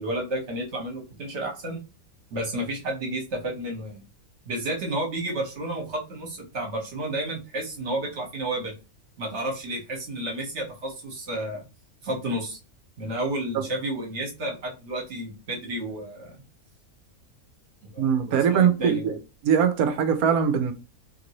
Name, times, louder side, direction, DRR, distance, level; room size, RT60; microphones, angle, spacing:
voice 1, 0.0-1.8 2.3-4.0 4.4-8.7 9.2-11.6 12.0-12.6 13.0-16.3 17.8-19.1, right 1 dB, 50° right, 1.3 m, -31 dB
voice 2, 18.0-19.2 19.4-20.7, right 7 dB, 75° right, 1.0 m, -22 dB
2.9 x 2.6 x 2.9 m
omnidirectional pair, 1.6 m